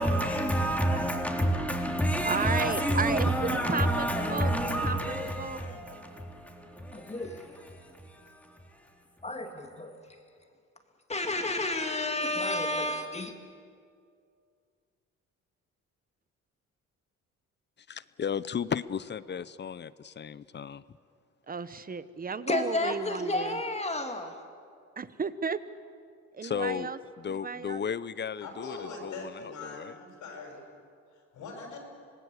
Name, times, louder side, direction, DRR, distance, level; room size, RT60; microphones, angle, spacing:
voice 1, 0.0-8.8, equal, 5° left, 3.5 m, -29 dB
voice 2, 2.2-5.6 21.5-23.6 25.0-25.6 26.3-27.0 27.3-27.8, right 5 dB, 30° right, 1.0 m, -33 dB
voice 3, 6.9-7.4 9.2-9.9 11.1-13.3 22.5-24.3, left 2 dB, 20° left, 2.5 m, -31 dB
voice 4, 17.9-20.8 26.4-26.9 27.2-30.0, left 7 dB, 35° left, 0.7 m, -35 dB
voice 5, 28.4-30.6 31.3-31.8, left 3 dB, 80° left, 6.6 m, -42 dB
26.0 x 19.0 x 8.2 m
cardioid pair, 90°, 30 cm